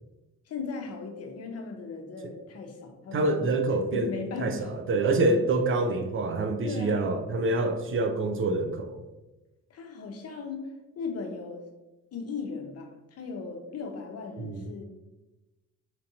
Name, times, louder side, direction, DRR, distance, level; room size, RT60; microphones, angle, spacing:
voice 1, 0.5-3.5 3.9-4.8 5.3-5.4 6.6-7.2 9.7-10.7 11.0-11.7 12.1-14.8, left 4 dB, 55° left, 3 dB, 0.7 m, -37 dB
voice 2, 3.1-4.1 4.4-9.0 14.4-14.6, right 2 dB, 45° right, 6 dB, 0.4 m, -26 dB
4.4 x 2.6 x 2.7 m, 1.0 s
cardioid pair, 90°, 30 cm